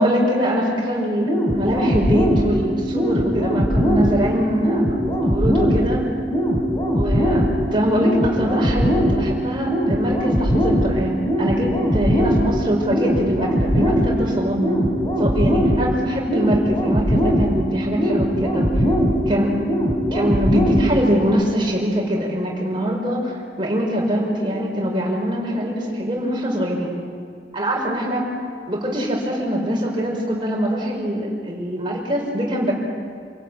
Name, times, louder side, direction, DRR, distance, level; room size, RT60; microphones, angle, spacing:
voice 1, 0.0-6.0 6.9-7.4 7.7-14.8 15.2-18.8 19.3-19.5 20.1-26.9 27.5-28.2 28.7-32.7, equal, 25° right, -2 dB, 5.3 m, -23 dB
sound 1, 1.3-21.3, equal, 25° left, 3.8 m, -21 dB
27.5 x 17.5 x 9.2 m, 2.3 s
head